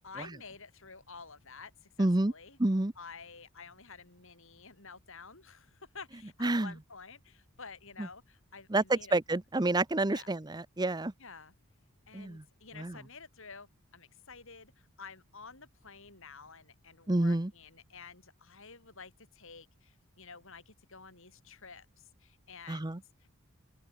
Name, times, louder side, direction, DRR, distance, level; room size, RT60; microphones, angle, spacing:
voice 1, 0.0-2.6 3.0-9.1 10.0-10.3 11.2-11.5 12.1-23.3, left 5 dB, 65° left, 7.1 m, -51 dB
voice 2, 2.0-2.3 2.6-2.9 6.4-6.7 8.7-11.1 12.1-12.4 12.8-13.0 17.1-17.5 22.7-23.0, right 2 dB, 20° right, 0.7 m, -28 dB
open air
head